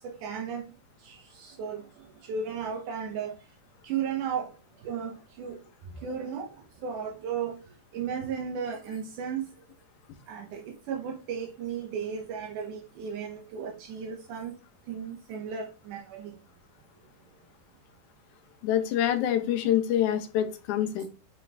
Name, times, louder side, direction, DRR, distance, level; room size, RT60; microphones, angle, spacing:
voice 1, 0.0-0.6 1.0-3.4 3.8-5.6 6.0-7.7 7.9-9.5 10.3-14.5 14.9-16.4, right 7 dB, 80° right, 2.4 m, -35 dB
voice 2, 18.6-21.0, left 10 dB, 75° left, 2.3 m, -26 dB
9.5 x 3.7 x 3.4 m
omnidirectional pair, 3.6 m